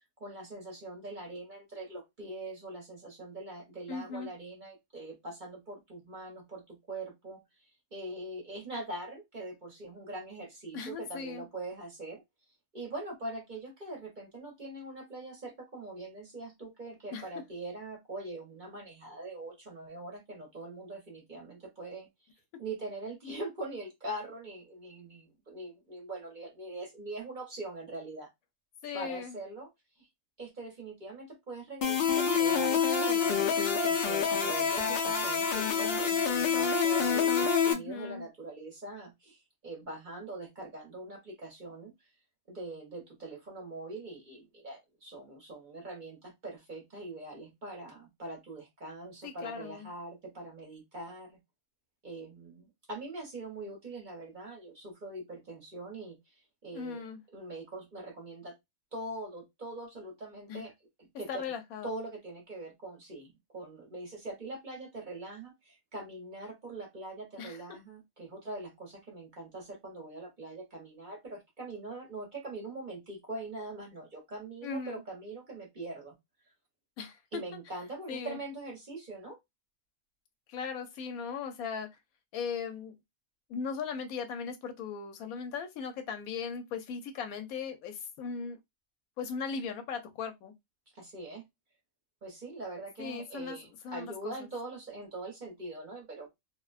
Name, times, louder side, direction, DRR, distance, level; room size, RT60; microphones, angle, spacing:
voice 1, 0.2-7.4 7.9-12.2 12.7-22.1 22.6-28.3 28.9-29.7 30.0-30.1 30.4-33.5 33.8-41.9 42.5-51.4 52.0-56.2 56.6-57.0 57.3-58.5 58.9-60.7 61.0-61.4 61.8-76.1 77.3-79.4 90.9-91.4 92.2-96.3, right 2 dB, 40° right, 0.8 m, -42 dB
voice 2, 3.9-4.3 10.7-11.4 17.1-17.2 28.8-29.4 37.7-38.3 49.2-49.9 56.7-57.2 60.5-60.6 61.3-61.9 67.4-67.8 74.6-75.0 77.0-77.4 78.1-78.4 80.5-81.9 82.3-82.9 83.5-88.6 89.2-90.5 93.0-93.6 93.8-94.5, left 6 dB, 85° left, 1.0 m, -38 dB
sound 1, 31.8-37.7, left 6 dB, 65° left, 0.6 m, -27 dB
2.5 x 2.1 x 2.3 m
omnidirectional pair, 1.5 m